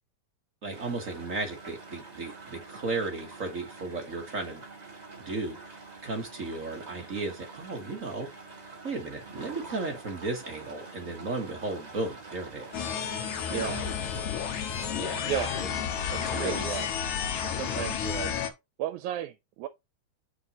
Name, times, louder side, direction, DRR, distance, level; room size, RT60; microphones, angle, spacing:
voice 1, 0.6-4.6 5.2-8.3 8.8-12.8 13.5-13.9 14.9-15.3 15.6-15.7 16.2-16.5 17.8-17.9, right 3 dB, 45° right, 1.0 m, -35 dB
sound 1, 0.7-14.2, right 3 dB, 20° right, 1.2 m, -46 dB
sound 2, 12.7-18.5, left 8 dB, 80° left, 2.6 m, -31 dB
voice 2, 13.5-13.8 15.3-15.5 16.1-16.9 17.5-18.5 18.8-19.7, right 12 dB, 85° right, 2.0 m, -34 dB
6.9 x 6.4 x 2.9 m
omnidirectional pair, 3.3 m